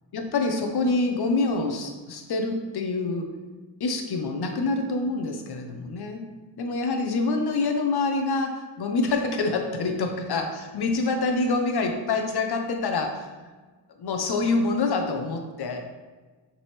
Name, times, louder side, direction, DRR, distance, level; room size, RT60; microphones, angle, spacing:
voice 1, 0.1-3.3 3.8-6.3 6.6-10.5 10.7-13.3 14.0-15.8, left 3 dB, 50° left, 4 dB, 1.0 m, -26 dB
7.3 x 3.9 x 3.3 m, 1.3 s
cardioid pair, 85°, 49 cm